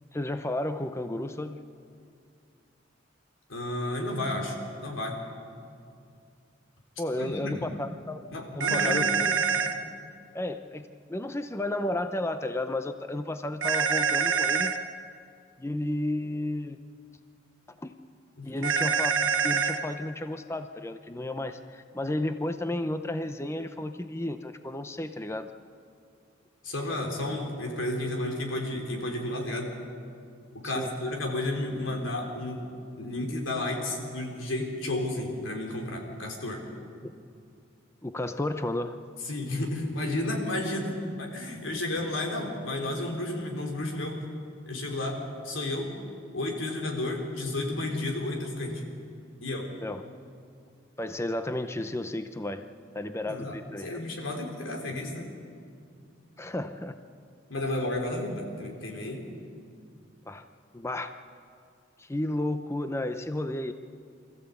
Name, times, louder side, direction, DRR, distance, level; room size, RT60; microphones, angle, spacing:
voice 1, 0.1-1.6 7.0-8.2 8.5-9.7 10.3-14.7 15.6-16.8 17.8-17.9 18.4-25.5 30.6-30.9 37.0-37.1 38.0-39.0 49.8-50.0 51.0-52.6 52.9-53.9 56.4-56.9 60.3-60.4 60.7-61.1 62.0-63.7, left 1 dB, 15° left, 8 dB, 0.6 m, -32 dB
voice 2, 3.5-5.1 7.2-7.7 8.3-9.1 18.4-18.5 26.6-29.7 30.5-32.6 33.0-36.6 39.2-44.2 44.7-45.9 46.3-48.8 49.4-49.7 53.2-55.3 57.5-59.3, left 1 dB, 85° left, 1 dB, 3.7 m, -32 dB
sound 1, 8.6-9.7 13.6-14.8 18.6-19.8, right 6 dB, 80° right, 1.5 m, -25 dB
24.5 x 14.5 x 8.3 m, 2.4 s
head